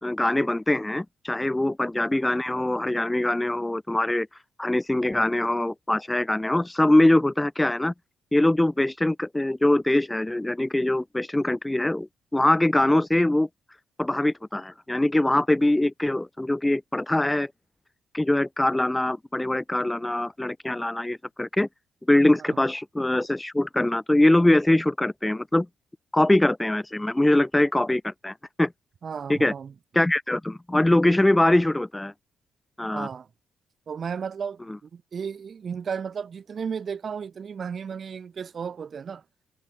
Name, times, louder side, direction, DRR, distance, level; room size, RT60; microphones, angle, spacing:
voice 1, 0.0-4.3 4.6-7.9 8.3-13.5 14.0-17.5 18.1-21.7 22.1-25.7 26.1-28.7 29.3-29.5 29.9-32.1 32.8-33.1, left 1 dB, 10° left, 0.9 m, -23 dB
voice 2, 29.0-29.7 32.9-33.3 33.9-39.2, right 6 dB, 45° right, 5.7 m, -34 dB
cardioid pair, 90°, 0 cm